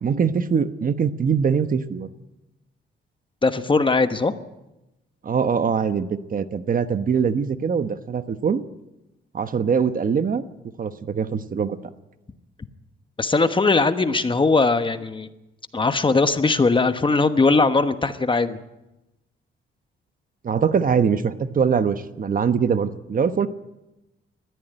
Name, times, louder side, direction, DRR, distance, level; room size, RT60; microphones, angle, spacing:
voice 1, 0.0-2.1 5.2-8.6 9.3-10.4 10.8-11.8 20.4-23.5, right 6 dB, 40° right, 11 dB, 1.1 m, -22 dB
voice 2, 3.4-4.3 13.2-15.3 15.7-18.6, left 3 dB, 25° left, 10 dB, 1.2 m, -20 dB
20.0 x 14.0 x 9.2 m, 0.96 s
cardioid pair, 105°, 21 cm